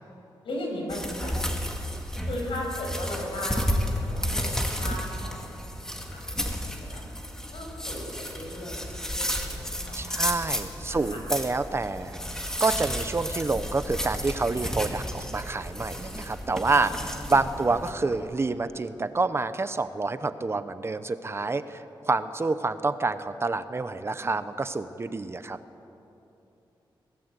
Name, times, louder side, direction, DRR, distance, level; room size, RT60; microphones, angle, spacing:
voice 1, 0.4-1.3 2.2-7.0 7.5-11.2 16.8-17.1 17.6-17.7, left 1 dB, 90° left, 0 dB, 6.5 m, -37 dB
sound 1, 0.9-17.9, equal, 5° left, 2.1 m, -32 dB
voice 2, 9.9-12.2 12.6-25.6, right 3 dB, 30° right, 11 dB, 0.8 m, -28 dB
sound 2, 13.5-18.6, right 1 dB, 15° right, 2.1 m, -44 dB
23.5 x 18.0 x 8.3 m, 3.0 s
wide cardioid pair, 135°, 9 cm